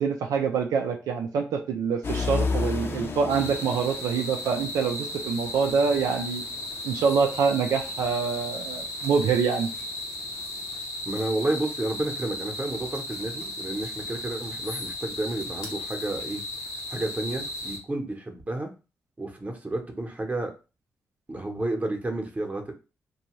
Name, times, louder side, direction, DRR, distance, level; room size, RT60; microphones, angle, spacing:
voice 1, 0.0-6.4 6.8-9.7, right 5 dB, 90° right, 3 dB, 0.4 m, -25 dB
sound 1, 2.0-9.8 10.3-10.7, left 3 dB, 45° left, 0.6 m, -33 dB
sound 2, 3.3-17.8, left 1 dB, 80° left, 0.9 m, -36 dB
voice 2, 11.0-16.4 16.9-18.7 19.2-20.5 21.3-22.7, right 2 dB, 25° right, 3 dB, 0.8 m, -31 dB
2.7 x 2.3 x 3.0 m, 0.32 s
cardioid pair, 65°, 6 cm